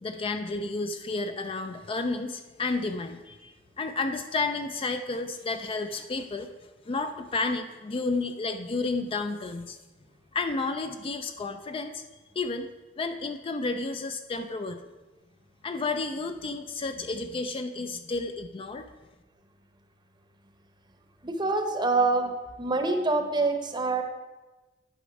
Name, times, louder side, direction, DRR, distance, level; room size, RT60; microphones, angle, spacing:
voice 1, 0.0-6.5 6.9-9.8 10.3-12.0 12.4-12.7 13.0-14.8 15.6-18.9, left 3 dB, 30° left, 7 dB, 0.4 m, -31 dB
voice 2, 21.2-22.3 22.6-24.0, right 3 dB, 25° right, 6 dB, 0.8 m, -25 dB
10.0 x 5.2 x 4.7 m, 1.2 s
head